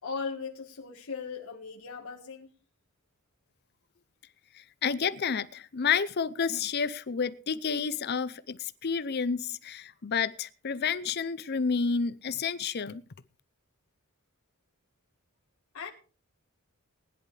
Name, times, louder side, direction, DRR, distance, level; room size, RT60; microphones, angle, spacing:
voice 1, 0.0-2.5 15.7-15.9, left 5 dB, 80° left, 1.7 m, -38 dB
voice 2, 4.5-13.0, left 6 dB, 45° left, 0.6 m, -30 dB
19.5 x 10.5 x 3.3 m
head